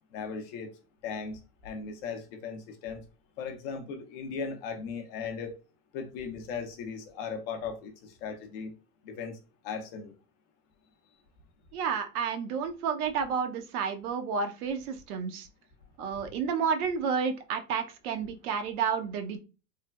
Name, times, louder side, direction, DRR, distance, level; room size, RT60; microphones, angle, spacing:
voice 1, 0.1-0.7 1.0-3.0 3.4-5.6 5.9-8.7 9.0-9.4 9.6-10.1, left 5 dB, 40° left, 0.5 m, -37 dB
voice 2, 11.7-15.5 16.0-19.4, right 6 dB, 65° right, 0.7 m, -31 dB
3.2 x 2.0 x 2.2 m
hypercardioid pair, 110°, 49 cm